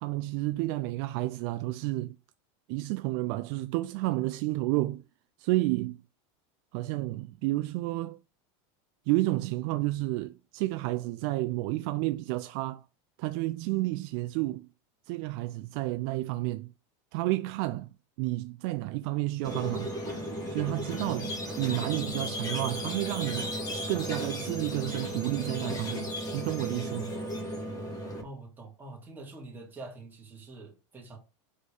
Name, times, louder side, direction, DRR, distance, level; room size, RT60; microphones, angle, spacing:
voice 1, 0.0-2.2 2.7-5.0 5.4-6.0 6.7-8.2 9.1-12.8 13.2-14.7 15.1-16.7 17.1-17.9 18.2-20.0 20.5-23.5 23.9-27.1, right 19 dB, 50° right, 0.4 m, -31 dB
Squeak, 19.4-28.2, equal, 25° left, 2.2 m, -35 dB
voice 2, 28.2-31.2, right 2 dB, 10° right, 2.0 m, -45 dB
4.9 x 4.3 x 5.0 m
supercardioid pair, 145°, 16 cm